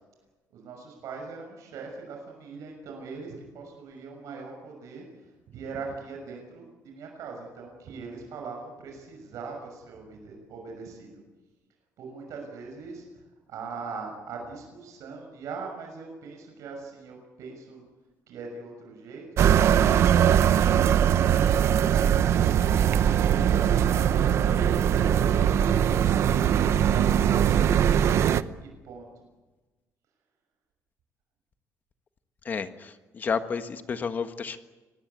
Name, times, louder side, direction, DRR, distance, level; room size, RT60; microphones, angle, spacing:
voice 1, 0.5-11.2 12.0-17.8 18.3-20.3 20.7-22.6 23.2-28.1 28.6-29.1, right 4 dB, 65° right, 2 dB, 6.3 m, -41 dB
sound 1, 19.4-28.4, right 9 dB, 50° right, 0.8 m, -21 dB
voice 2, 32.4-34.6, left 6 dB, 30° left, 9 dB, 1.5 m, -31 dB
25.5 x 20.0 x 8.2 m, 1.2 s
cardioid pair, 170°, 6 cm